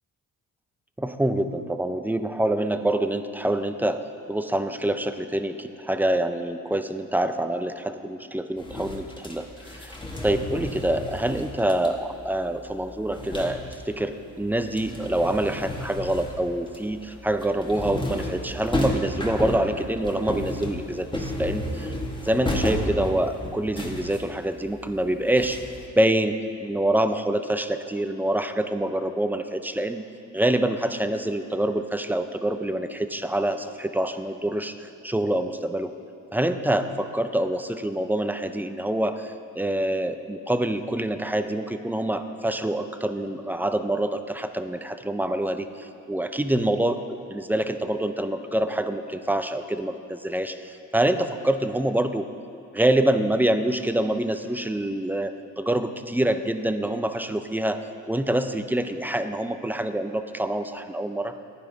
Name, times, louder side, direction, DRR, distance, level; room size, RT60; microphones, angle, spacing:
voice 1, 1.0-4.0 4.3-10.0 10.2-13.6 13.9-21.9 22.2-25.6 26.0-30.0 30.3-35.9 36.3-47.0 47.3-52.3 52.7-57.8 58.1-61.3, right 1 dB, 5° right, 9 dB, 0.5 m, -26 dB
sound 1, 8.6-14.0 14.3-25.8, left 1 dB, 15° left, 1.6 m, -33 dB
15.0 x 10.5 x 4.0 m, 2.6 s
cardioid pair, 90°, 30 cm